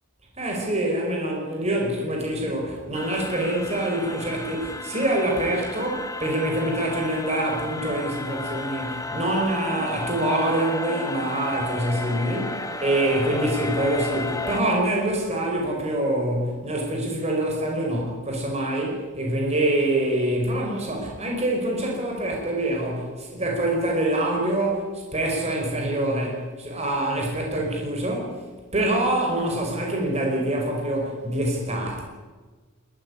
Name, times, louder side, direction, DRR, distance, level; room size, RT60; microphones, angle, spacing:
voice 1, 0.4-28.4 28.7-32.0, right 1 dB, 30° right, 0 dB, 5.2 m, -25 dB
sound 1, 2.9-14.6, left 2 dB, 15° left, 1.5 m, -33 dB
21.5 x 17.5 x 9.9 m, 1.4 s
head